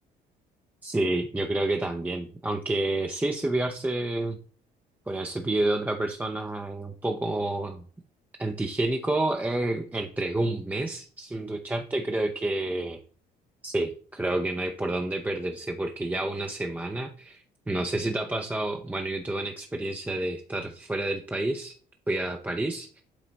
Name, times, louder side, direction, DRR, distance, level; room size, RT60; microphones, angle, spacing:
voice 1, 0.8-4.4 5.1-7.8 8.4-13.0 13.6-21.8 22.1-23.0, right 2 dB, 10° right, 4 dB, 0.5 m, -29 dB
7.7 x 4.1 x 3.9 m, 0.44 s
cardioid pair, 110°, 17 cm